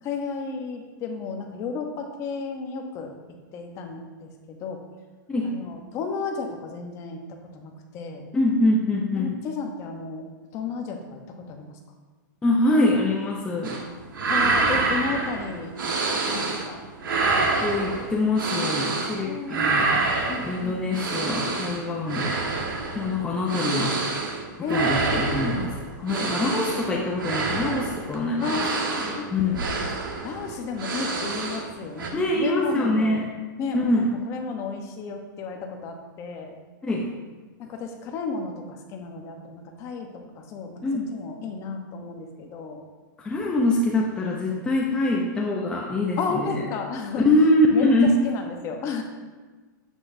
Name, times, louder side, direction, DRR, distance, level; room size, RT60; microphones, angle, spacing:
voice 1, 0.0-3.1 3.5-4.8 5.4-8.3 9.2-10.3 10.5-11.7 14.3-15.8 16.3-16.8 19.2-19.8 20.3-21.0 24.6-25.5 28.4-29.3 30.2-33.2 33.6-36.6 37.6-42.8 46.2-47.3 47.7-47.9 48.2-49.0, left 4 dB, 25° left, 3 dB, 1.0 m, -33 dB
voice 2, 8.3-9.3 12.4-13.8 17.3-20.0 20.4-22.3 22.9-24.0 24.7-25.7 26.0-28.5 29.3-29.7 32.1-33.3 33.7-34.1 36.8-37.1 40.8-41.1 43.2-46.6 47.2-48.2, left 1 dB, 10° left, -2 dB, 0.7 m, -24 dB
sound 1, 13.6-13.9 14.1-16.7 17.0-19.2 19.5-31.7 32.0-32.1, right 3 dB, 85° right, 1.7 m, -27 dB
9.6 x 8.0 x 2.7 m, 1.3 s
hypercardioid pair, 150°, 11 cm